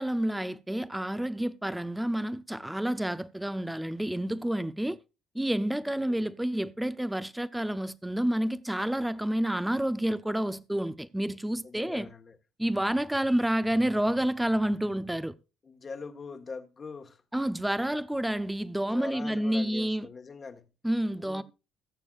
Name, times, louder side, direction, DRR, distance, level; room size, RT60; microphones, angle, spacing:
voice 1, 0.0-5.0 5.3-12.1 12.6-15.3 17.3-20.1 20.8-21.4, right 1 dB, 5° right, 0.6 m, -29 dB
voice 2, 6.0-6.3 11.6-12.4 15.6-17.2 18.9-20.7 21.2-21.4, left 4 dB, 30° left, 1.4 m, -43 dB
21.0 x 7.0 x 2.4 m
cardioid pair, 120°, 0 cm